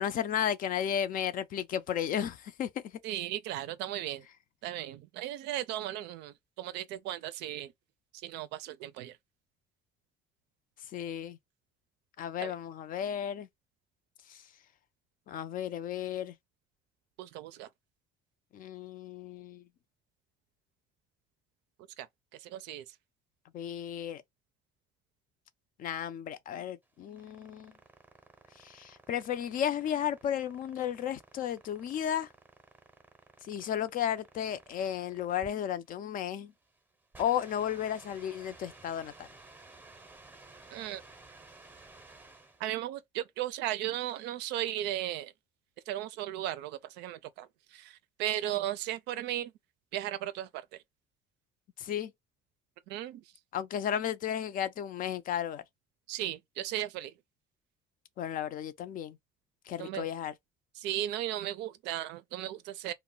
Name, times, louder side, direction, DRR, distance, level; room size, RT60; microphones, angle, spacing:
voice 1, 0.0-2.8 10.9-11.4 12.2-13.5 14.3-14.4 15.3-16.3 18.5-19.6 23.5-24.2 25.8-27.7 28.6-32.3 33.5-36.5 37.2-39.3 51.8-52.1 53.5-55.6 58.2-59.2 59.7-60.3, left 9 dB, 55° left, 0.4 m, -34 dB
voice 2, 3.0-4.2 4.6-7.7 8.2-9.2 12.4-12.5 17.2-17.7 22.0-22.1 22.4-22.8 40.7-41.0 42.6-45.3 45.9-49.5 49.9-50.6 52.9-53.2 56.1-57.1 59.8-60.1 60.8-62.9, right 13 dB, 90° right, 0.4 m, -36 dB
sound 1, 26.8-42.7, right 3 dB, 10° right, 0.6 m, -55 dB
2.3 x 2.1 x 3.7 m
cardioid pair, 110°, 17 cm